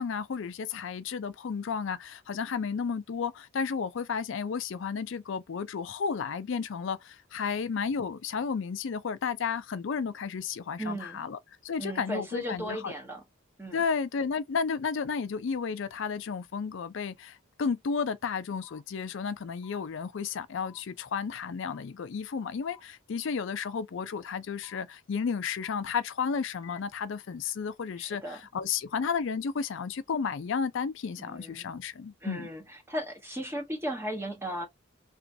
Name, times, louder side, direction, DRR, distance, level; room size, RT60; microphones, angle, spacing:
voice 1, 0.0-12.9 13.7-32.5, left 6 dB, 65° left, 0.4 m, -32 dB
voice 2, 10.8-11.2 11.8-13.2 13.6-13.8 28.0-28.4 31.2-31.7 32.2-34.7, equal, 10° right, 1.0 m, -36 dB
sound 1, 18.6-18.8 19.6-19.8 20.6-20.8 21.6-21.8 22.6-22.8 23.6-23.8 24.6-24.8 25.6-25.8 26.6-26.8, left 9 dB, 20° left, 0.6 m, -53 dB
3.0 x 2.4 x 2.6 m
head